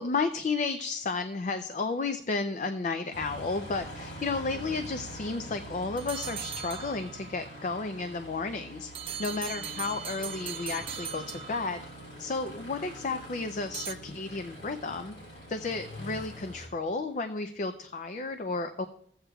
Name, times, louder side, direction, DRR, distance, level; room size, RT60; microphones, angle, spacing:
voice 1, 0.0-8.9 9.2-11.8 12.2-15.1 15.5-18.9, left 3 dB, 45° left, 9 dB, 0.4 m, -32 dB
Aircraft, 3.1-16.7, equal, 85° left, 3.6 m, -44 dB
sound 1, 6.0-7.3 8.9-11.9 13.7-13.9, right 8 dB, 30° right, 0.4 m, -39 dB
15.5 x 7.9 x 2.3 m, 0.66 s
head